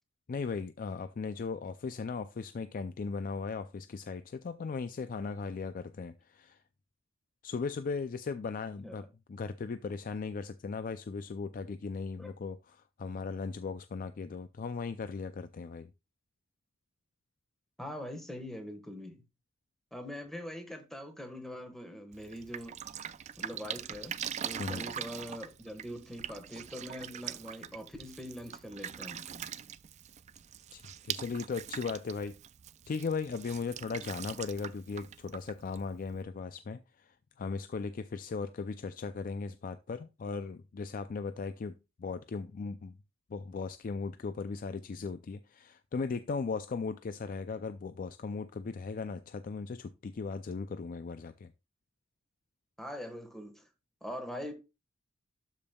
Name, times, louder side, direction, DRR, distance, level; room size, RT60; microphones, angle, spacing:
voice 1, 0.3-6.6 7.4-15.9 24.6-24.8 30.7-32.3 32.9-42.9 43.3-51.5, left 4 dB, 40° left, 0.4 m, -37 dB
voice 2, 17.8-19.2 19.9-22.7 23.4-24.2 24.4-29.5 52.8-53.6 54.0-54.5, equal, ahead, 1.4 m, -43 dB
Drip, 22.1-36.2, right 9 dB, 35° right, 0.3 m, -43 dB
12.0 x 5.2 x 2.3 m
head